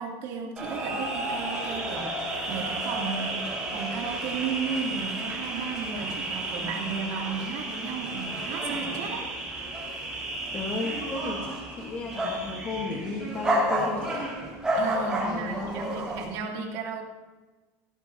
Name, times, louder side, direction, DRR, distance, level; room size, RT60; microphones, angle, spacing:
voice 1, 0.0-9.3 14.7-17.0, right 5 dB, 55° right, 0 dB, 2.5 m, -34 dB
sound 1, 0.6-16.2, right 1 dB, 10° right, 4.6 m, -31 dB
voice 2, 10.5-14.4 15.2-16.0, left 3 dB, 25° left, 0 dB, 1.2 m, -34 dB
16.0 x 15.5 x 2.7 m, 1.2 s
cardioid pair, 165°, 8 cm